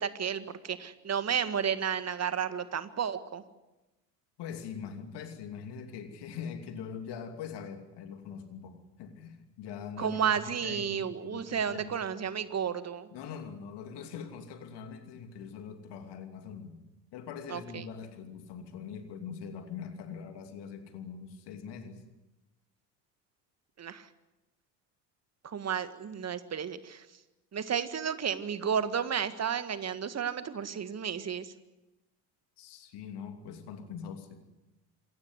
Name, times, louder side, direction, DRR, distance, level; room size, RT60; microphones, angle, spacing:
voice 1, 0.0-3.4 10.0-13.1 17.5-17.8 23.8-24.1 25.4-27.1 27.5-31.5, right 7 dB, 30° right, 12 dB, 1.8 m, -32 dB
voice 2, 4.4-12.0 13.1-16.8 17.1-22.0 32.6-34.4, left 7 dB, 55° left, 7 dB, 2.9 m, -43 dB
27.5 x 15.0 x 9.7 m, 1.0 s
figure-of-eight pair, 60°, 48 cm